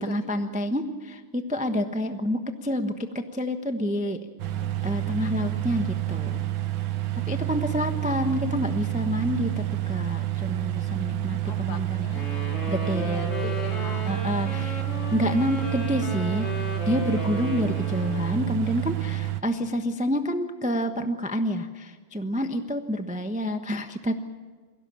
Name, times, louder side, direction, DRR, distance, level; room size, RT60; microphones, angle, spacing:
voice 1, 0.0-4.2 4.8-6.4 7.3-12.1 12.7-13.3 14.1-14.8 15.1-16.5 16.9-24.1, equal, 10° right, 7 dB, 0.4 m, -28 dB
sound 1, 4.4-19.4, right 15 dB, 70° right, 1.7 m, -29 dB
voice 2, 4.6-5.1 10.9-12.5 12.8-14.2 14.5-14.7, left 8 dB, 60° left, 10 dB, 1.3 m, -41 dB
Wind instrument woodwind instrument, 12.1-18.6, left 2 dB, 30° left, 2.7 m, -35 dB
22.5 x 16.5 x 8.8 m, 1.5 s
omnidirectional pair, 2.4 m